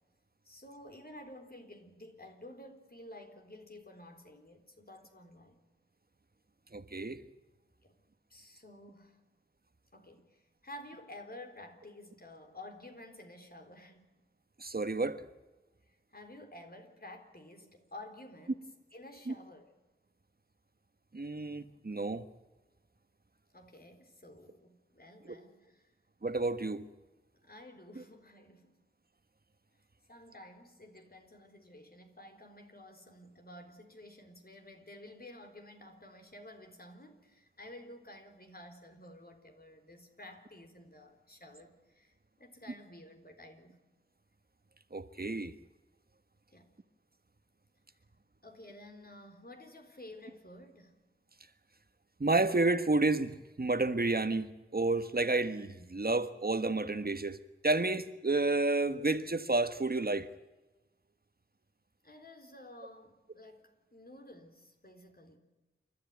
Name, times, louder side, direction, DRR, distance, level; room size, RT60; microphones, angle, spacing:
voice 1, 0.4-5.6 7.8-8.0 8.3-9.3 9.9-14.1 15.9-19.7 23.5-25.9 27.4-28.8 30.1-43.8 46.5-46.8 48.4-51.0 62.0-65.4, left 1 dB, 50° left, 4.0 m, -52 dB
voice 2, 6.7-7.2 14.6-15.2 19.3-19.4 21.1-22.2 26.2-26.8 27.9-28.0 44.9-45.5 52.2-57.4 57.6-60.3, right 2 dB, 50° right, 1.5 m, -30 dB
28.5 x 13.0 x 9.4 m
wide cardioid pair, 55°, 21 cm